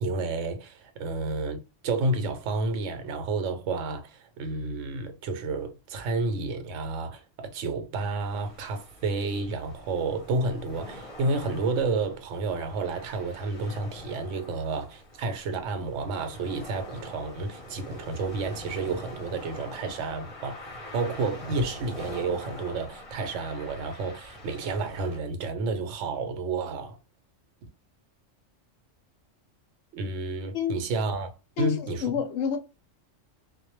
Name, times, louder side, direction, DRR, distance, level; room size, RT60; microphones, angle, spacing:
voice 1, 0.0-20.6 20.9-27.0 29.9-31.3 31.6-32.0, right 3 dB, 75° right, 0.9 m, -30 dB
sound 1, 8.2-25.2, left 1 dB, 35° left, 0.7 m, -44 dB
voice 2, 31.6-32.6, left 8 dB, 65° left, 0.8 m, -28 dB
2.2 x 2.0 x 2.9 m
omnidirectional pair, 1.3 m